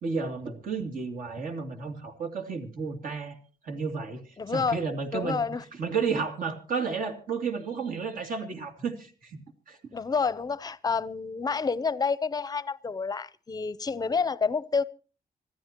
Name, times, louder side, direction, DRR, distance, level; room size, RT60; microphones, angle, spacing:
voice 1, 0.0-3.4 3.6-5.4 5.8-9.8, right 5 dB, 65° right, 2.7 m, -32 dB
voice 2, 4.4-4.8 5.1-5.6 9.9-14.8, left 5 dB, 25° left, 0.6 m, -29 dB
25.5 x 14.0 x 2.9 m
wide cardioid pair, 150°, 16 cm